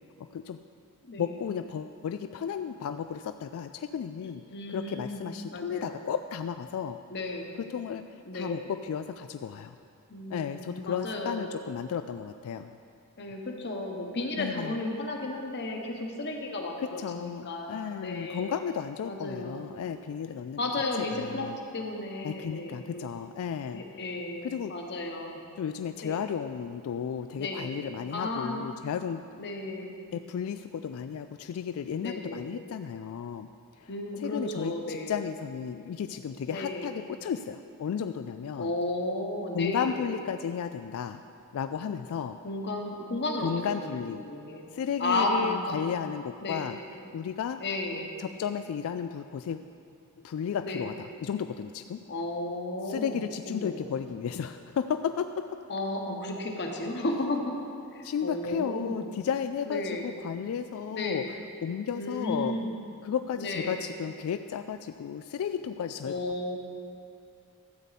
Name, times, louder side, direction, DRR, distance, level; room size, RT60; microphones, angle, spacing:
voice 1, 0.2-0.6 1.2-4.4 4.7-7.0 7.7-8.0 8.3-9.8 10.3-12.7 14.4-14.8 17.0-20.6 21.1-21.6 22.2-23.8 24.4-24.7 25.6-29.2 30.1-33.5 33.8-33.9 34.2-38.7 39.5-41.2 41.5-42.4 43.4-44.2 44.7-46.8 47.1-47.6 48.2-49.6 50.2-52.0 52.9-55.5 58.0-61.2 61.6-62.6 63.0-66.1, left 7 dB, 65° left, 9 dB, 0.3 m, -33 dB
voice 2, 1.0-1.4 4.2-6.0 7.1-7.5 8.2-8.7 10.1-11.4 13.2-18.5 19.0-19.6 20.6-21.5 21.7-23.1 23.7-25.4 26.0-26.2 27.4-27.7 28.1-28.6 29.4-29.9 32.0-32.5 33.9-35.1 36.5-36.9 38.6-40.0 42.4-43.5 43.8-44.6 45.0-45.8 46.4-46.7 47.6-48.1 50.6-50.9 52.1-53.2 53.5-53.8 55.7-57.5 57.9-59.0 59.7-60.1 60.9-61.4 61.9-62.8 63.3-63.8 66.0-66.6, left 2 dB, 50° left, 1 dB, 1.2 m, -33 dB
12.5 x 8.2 x 4.2 m, 2.5 s
head